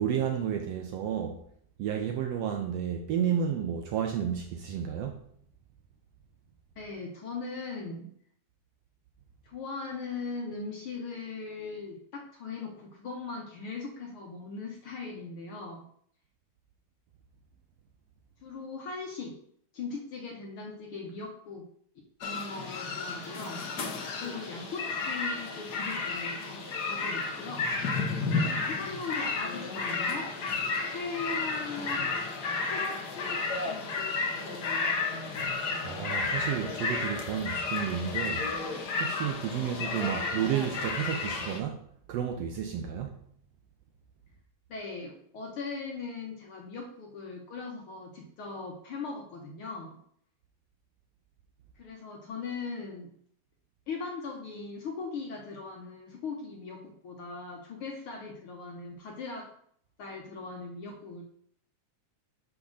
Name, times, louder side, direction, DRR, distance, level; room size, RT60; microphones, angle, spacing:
voice 1, 0.0-1.4 1.8-5.3 35.8-38.5 39.0-43.3, right 9 dB, 80° right, 1.5 m, -31 dB
voice 2, 6.8-8.1 9.4-15.8 18.4-19.3 19.7-21.7 22.2-23.6 24.2-27.7 28.7-30.3 30.9-32.1 32.6-33.0 33.6-35.1 40.1-40.2 44.7-50.0 51.8-53.1 53.9-59.5 60.0-61.2, left 4 dB, 65° left, 1.4 m, -39 dB
sound 1, 22.2-41.6, left 4 dB, 80° left, 0.9 m, -32 dB
7.0 x 3.6 x 6.4 m
omnidirectional pair, 3.4 m